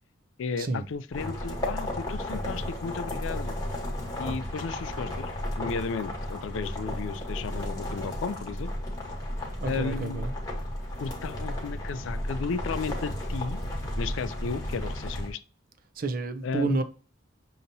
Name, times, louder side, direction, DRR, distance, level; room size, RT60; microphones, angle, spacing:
voice 1, 0.4-3.6 4.2-5.3 5.6-8.7 9.6-10.3 11.0-13.6 14.0-15.4 16.4-16.8, left 5 dB, 80° left, 0.4 m, -34 dB
sound 1, 1.1-15.3, left 1 dB, 20° left, 1.1 m, -33 dB
voice 2, 9.6-10.3 16.0-16.8, right 3 dB, 45° right, 0.4 m, -30 dB
6.6 x 2.8 x 2.6 m
head